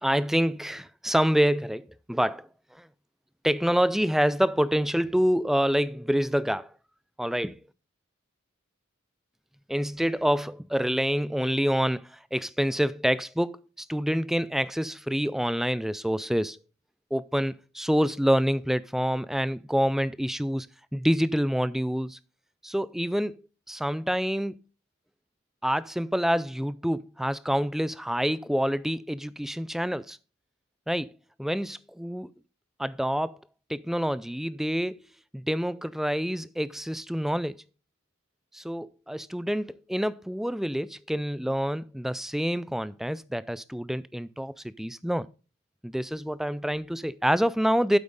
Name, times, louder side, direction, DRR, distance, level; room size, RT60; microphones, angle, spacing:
voice 1, 0.0-2.9 3.4-6.7 7.2-7.6 9.7-16.6 17.1-20.7 20.9-22.2 22.6-23.3 23.7-24.6 25.6-30.2 30.9-31.1 31.4-32.3 32.8-33.4 33.7-35.0 35.3-37.6 38.5-45.3 45.8-48.0, equal, ahead, 0.3 m, -27 dB
8.6 x 8.0 x 3.7 m
head